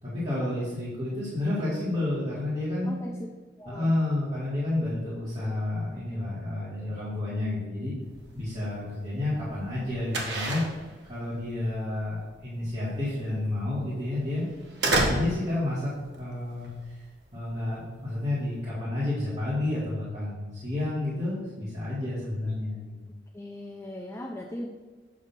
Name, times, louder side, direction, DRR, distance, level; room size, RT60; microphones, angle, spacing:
voice 1, 0.0-2.9 3.6-7.9 8.3-10.6 11.1-14.5 14.8-15.9 16.2-17.0 17.3-22.9, left 2 dB, 35° right, -11 dB, 1.7 m, -30 dB
voice 2, 3.6-3.9 23.3-24.7, left 1 dB, 15° left, -1 dB, 0.4 m, -38 dB
sound 1, 8.0-18.7, right 2 dB, 65° right, 1.2 m, -33 dB
7.4 x 2.8 x 5.8 m, 1.3 s
head